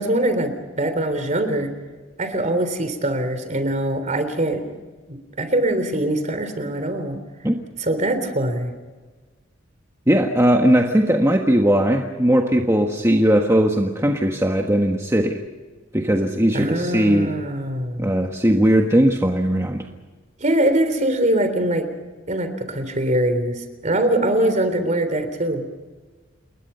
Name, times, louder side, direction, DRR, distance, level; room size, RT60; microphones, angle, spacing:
voice 1, 0.0-1.7 2.2-4.6 5.1-7.2 7.8-8.7 16.5-18.1 20.4-21.9 22.3-25.7, right 1 dB, 40° right, 9 dB, 3.5 m, -22 dB
voice 2, 10.1-15.4 15.9-17.3 18.0-19.8, equal, 15° right, 2 dB, 1.5 m, -18 dB
29.0 x 21.5 x 5.7 m, 1.3 s
head